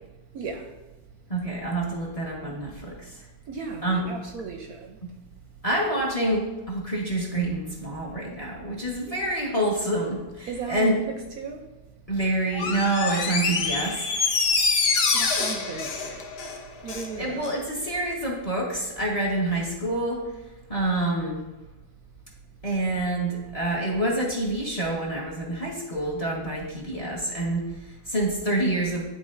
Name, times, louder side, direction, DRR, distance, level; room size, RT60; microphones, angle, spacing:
voice 1, 0.3-0.7 3.5-5.0 10.5-11.6 15.1-16.2 16.8-17.5, right 5 dB, 70° right, 1.0 m, -36 dB
voice 2, 1.3-3.2 3.8-4.0 5.6-11.0 12.1-14.1 17.2-20.2 20.7-21.4 22.6-29.0, right 1 dB, 25° left, 1.0 m, -27 dB
Door, 12.5-17.1 17.4-17.5, left 4 dB, 60° left, 0.6 m, -25 dB
11.0 x 4.0 x 2.5 m
omnidirectional pair, 1.9 m